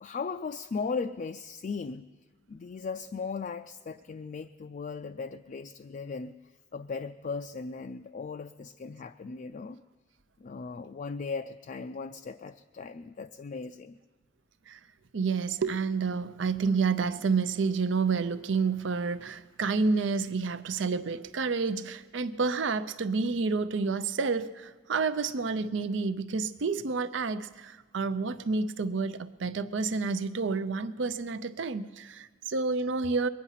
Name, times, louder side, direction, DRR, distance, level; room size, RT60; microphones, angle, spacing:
voice 1, 0.0-2.1 2.5-6.4 6.7-9.8 10.4-14.0, left 4 dB, 45° left, 0.4 m, -37 dB
voice 2, 15.1-33.3, right 4 dB, 70° right, 0.6 m, -29 dB
22.0 x 9.5 x 5.7 m
head